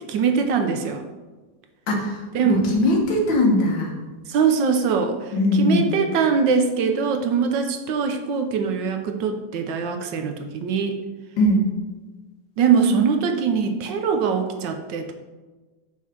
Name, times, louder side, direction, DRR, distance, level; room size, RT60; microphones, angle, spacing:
voice 1, 0.1-1.0 2.3-2.7 4.3-11.0 12.6-15.1, right 6 dB, 75° right, 6 dB, 1.3 m, -22 dB
voice 2, 1.9-3.9 5.3-5.9 11.4-11.7, left 1 dB, 75° left, 0 dB, 2.0 m, -20 dB
6.3 x 3.7 x 6.0 m, 1.3 s
omnidirectional pair, 2.1 m